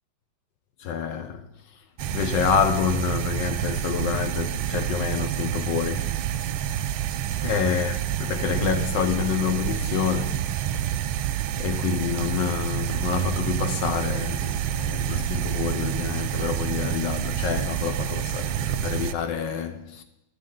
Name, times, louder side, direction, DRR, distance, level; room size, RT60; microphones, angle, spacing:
voice 1, 0.8-1.4 2.1-6.1 7.4-10.9 11.6-20.0, left 8 dB, 70° left, 1.3 m, -28 dB
sound 1, 2.0-19.1, right 10 dB, 85° right, 1.5 m, -28 dB
14.0 x 12.0 x 3.8 m
omnidirectional pair, 2.2 m